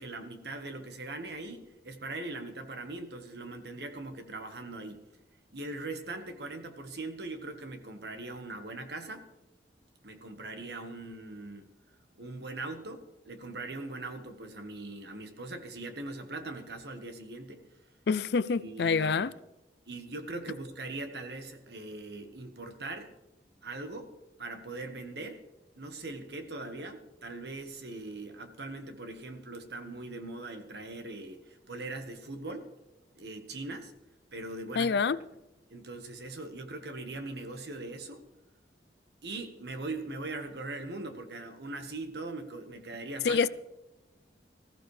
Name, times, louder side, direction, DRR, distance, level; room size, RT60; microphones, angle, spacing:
voice 1, 0.0-5.0 5.5-9.3 10.0-11.7 12.2-17.6 18.6-19.3 19.9-23.1 23.6-24.1 24.4-25.4 25.8-32.7 33.1-33.9 34.3-34.9 35.7-38.2 39.2-43.4, right 2 dB, 65° right, 1.5 m, -41 dB
voice 2, 18.1-19.3 34.8-35.2 43.2-43.5, left 5 dB, 65° left, 0.4 m, -26 dB
19.5 x 14.5 x 3.3 m
head